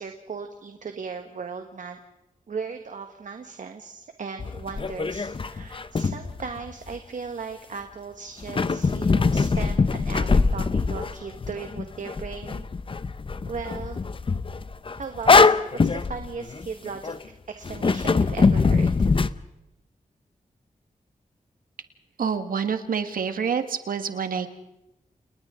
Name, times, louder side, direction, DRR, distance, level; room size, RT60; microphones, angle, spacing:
voice 1, 0.0-2.0 2.5-12.7 13.5-14.0 14.9-19.1, right 5 dB, 65° right, 6 dB, 1.4 m, -37 dB
sound 1, 4.4-7.0 8.4-17.2 17.6-19.3, left 4 dB, 40° left, 0.7 m, -23 dB
voice 2, 22.2-24.5, right 6 dB, 90° right, 8 dB, 1.6 m, -27 dB
30.0 x 29.5 x 3.7 m, 0.93 s
wide cardioid pair, 105°, 14 cm